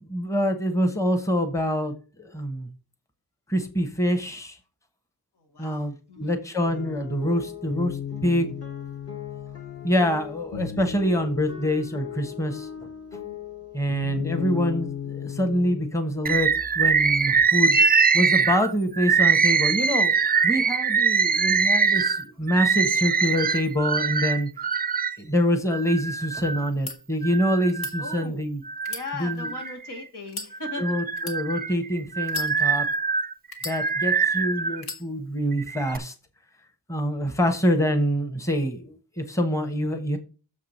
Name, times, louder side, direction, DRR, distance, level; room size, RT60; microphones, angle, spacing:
voice 1, 0.0-2.7 3.5-4.6 5.6-8.5 9.8-12.7 13.7-24.7 25.1-28.6 29.2-29.5 30.8-32.9 33.6-36.1 36.9-40.2, equal, 10° left, 6 dB, 1.1 m, -26 dB
voice 2, 5.4-6.4 28.0-28.5 28.9-31.0, left 3 dB, 90° left, 1 dB, 2.4 m, -38 dB
sound 1, 6.6-16.0, left 9 dB, 40° left, 1.8 m, -35 dB
Bird, 16.3-25.2 25.7-26.7 27.2-28.2 28.7-30.0 30.5-34.8 35.5-36.0, right 5 dB, 25° right, 0.3 m, -23 dB
sound 2, 26.7-27.0 27.7-28.0 28.8-29.7 30.3-30.5 31.2-31.4 32.2-32.9 33.5-34.2 34.8-35.0, left 3 dB, 65° left, 1.8 m, -36 dB
7.1 x 4.8 x 7.1 m, 0.35 s
wide cardioid pair, 175°, 39 cm